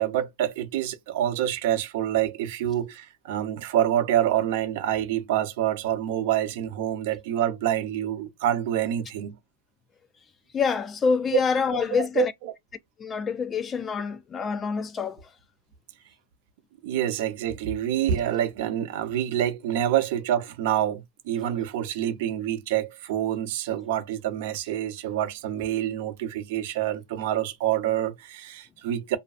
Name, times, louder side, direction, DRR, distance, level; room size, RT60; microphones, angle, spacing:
voice 1, 0.0-9.3 12.0-12.5 16.8-29.2, right 11 dB, 60° right, 0.6 m, -27 dB
voice 2, 10.5-12.3 13.0-15.2, left 5 dB, 20° left, 0.3 m, -26 dB
2.5 x 2.3 x 2.4 m
hypercardioid pair, 135°, 0 cm